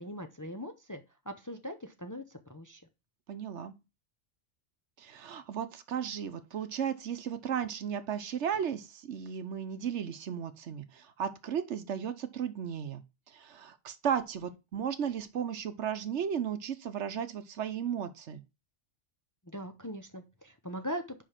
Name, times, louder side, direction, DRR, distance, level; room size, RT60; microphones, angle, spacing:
voice 1, 0.0-2.8 19.4-21.2, equal, 20° left, 0.6 m, -41 dB
voice 2, 3.3-3.7 5.0-18.4, right 8 dB, 70° right, 1.1 m, -35 dB
5.3 x 5.0 x 5.7 m
omnidirectional pair, 1.3 m